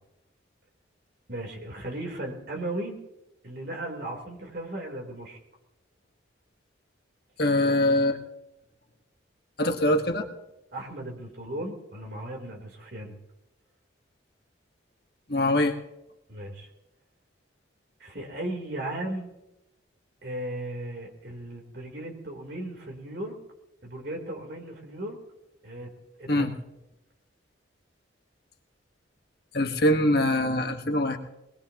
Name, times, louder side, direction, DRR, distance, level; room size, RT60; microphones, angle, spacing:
voice 1, 1.3-3.0 3.4-5.4 10.7-13.1 16.3-16.7 18.0-19.3 20.2-23.3 23.8-25.2 25.6-25.9 26.2-26.5, right 1 dB, 55° right, 0 dB, 3.6 m, -36 dB
voice 2, 7.4-8.2 9.6-10.2 15.3-15.7 26.3-26.5 29.5-31.2, left 1 dB, 55° left, 5 dB, 1.4 m, -23 dB
22.0 x 20.0 x 3.0 m, 0.91 s
head